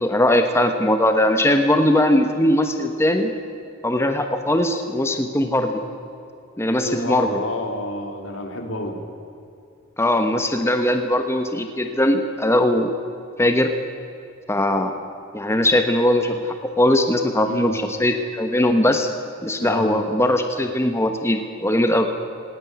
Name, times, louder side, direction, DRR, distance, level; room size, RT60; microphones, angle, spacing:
voice 1, 0.0-3.3 3.8-5.8 6.6-7.4 10.0-12.9 13.4-13.7 14.5-14.9 15.3-16.5 16.8-19.1 19.4-22.1, left 1 dB, 15° left, 6 dB, 1.2 m, -20 dB
voice 2, 6.8-9.0 17.4-17.8 19.6-20.1, left 1 dB, 75° left, 4 dB, 3.2 m, -29 dB
19.0 x 18.0 x 9.5 m, 2.7 s
head